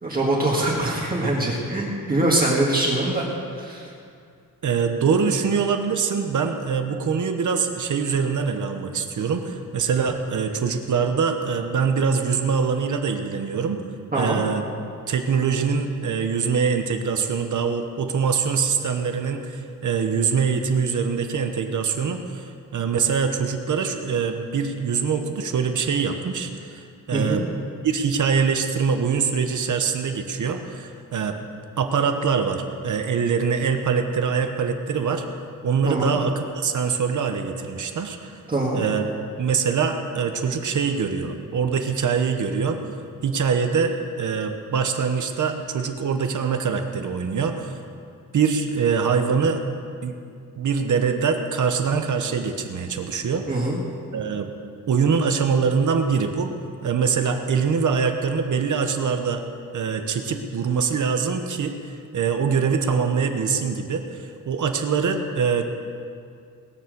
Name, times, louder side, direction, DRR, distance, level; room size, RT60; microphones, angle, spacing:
voice 1, 0.0-3.3 3.6-3.9 14.1-14.4 27.1-27.4 35.8-36.2 38.5-38.8 53.5-53.8, right 2 dB, 25° right, -4 dB, 1.9 m, -23 dB
voice 2, 4.6-13.8 14.1-14.6 15.1-27.4 27.8-31.4 31.8-35.2 35.6-38.4 38.7-39.0 39.4-42.8 43.2-47.7 48.3-49.6 50.0-50.2 50.6-53.5 54.1-54.5 54.9-56.5 56.8-59.4 59.7-65.6, right 6 dB, 60° right, 5 dB, 1.1 m, -23 dB
20.5 x 7.3 x 6.8 m, 2.4 s
wide cardioid pair, 170°, 34 cm